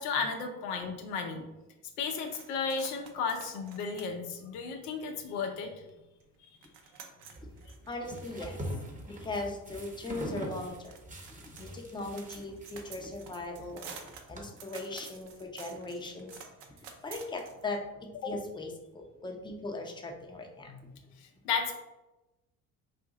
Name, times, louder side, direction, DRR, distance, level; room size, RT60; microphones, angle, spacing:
voice 1, 0.0-1.4 2.0-5.7 18.2-18.3 20.7-20.8 21.2-21.7, left 5 dB, 85° left, 4 dB, 0.6 m, -34 dB
sound 1, 2.2-5.4 5.9-6.0 6.2-17.9, right 6 dB, 70° right, 0.7 m, -51 dB
sound 2, 7.4-14.4, equal, 15° right, 0.9 m, -43 dB
voice 2, 7.8-8.6 9.1-11.0 11.6-13.9 14.3-16.4 17.0-20.7, left 2 dB, 10° left, 2 dB, 0.6 m, -39 dB
2.6 x 2.5 x 3.8 m, 0.99 s
hypercardioid pair, 55°, 45 cm